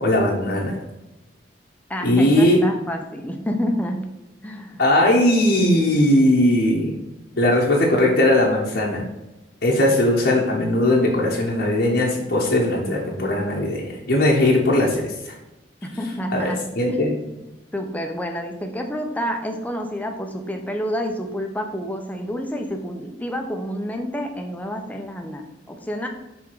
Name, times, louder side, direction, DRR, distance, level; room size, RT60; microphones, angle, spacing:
voice 1, 0.0-0.8 2.0-2.6 4.8-6.9 7.4-9.1 9.6-15.3 16.3-16.4 16.8-17.1, left 1 dB, 65° left, -3 dB, 1.1 m, -19 dB
voice 2, 1.9-4.0 4.4-4.8 15.8-17.4 17.7-26.1, equal, 10° left, 3 dB, 0.7 m, -29 dB
5.8 x 3.6 x 4.7 m, 0.98 s
head